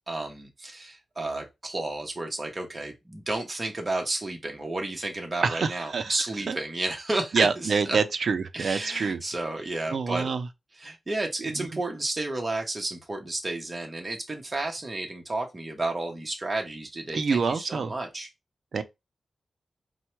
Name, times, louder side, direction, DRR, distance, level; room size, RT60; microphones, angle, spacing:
voice 1, 0.1-8.0 8.5-10.3 10.8-18.3, right 2 dB, 25° right, 0.8 m, -32 dB
voice 2, 5.4-6.1 6.5-6.6 7.3-9.2 9.9-10.5 11.5-11.8 17.1-17.9 18.7-18.8, right 5 dB, 70° right, 0.5 m, -26 dB
4.4 x 2.1 x 4.4 m
wide cardioid pair, 155°, 0 cm